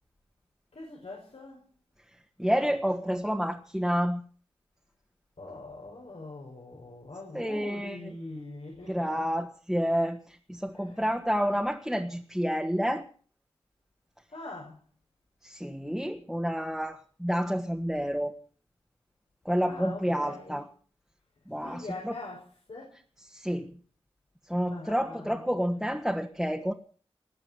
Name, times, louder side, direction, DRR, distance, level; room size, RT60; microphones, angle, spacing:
voice 1, 0.7-1.7 5.4-9.2 10.7-11.0 14.3-14.8 19.7-20.6 21.6-23.0 24.7-25.8, left 2 dB, 85° left, -2 dB, 5.6 m, -43 dB
voice 2, 2.4-4.2 7.3-8.0 8.9-13.1 15.4-18.3 19.4-20.6 21.5-22.1 23.3-23.7 24.5-26.7, equal, ahead, 3 dB, 1.6 m, -29 dB
20.0 x 7.2 x 9.5 m, 0.44 s
wide cardioid pair, 55°, 11 cm